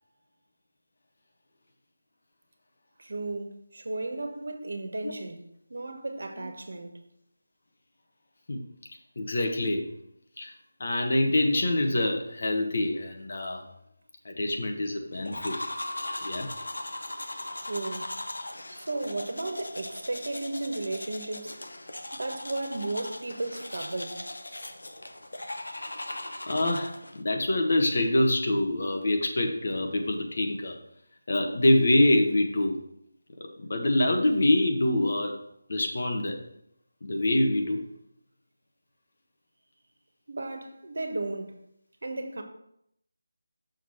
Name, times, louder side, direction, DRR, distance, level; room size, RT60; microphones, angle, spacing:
voice 1, 3.0-5.4 5.7-7.0 17.6-18.2 18.7-21.6 22.1-24.2 40.3-41.6 42.0-42.4, right 2 dB, 70° right, 1.3 m, -34 dB
voice 2, 9.1-9.9 10.4-10.5 10.8-13.6 14.2-15.6 16.2-16.5 26.5-30.8 31.3-32.8 33.4-35.4 35.7-36.4 37.0-37.8, left 1 dB, 55° left, 1.4 m, -25 dB
sound 1, 15.2-27.2, left 1 dB, 85° left, 0.9 m, -38 dB
6.5 x 4.8 x 6.3 m
figure-of-eight pair, 165°, 0 cm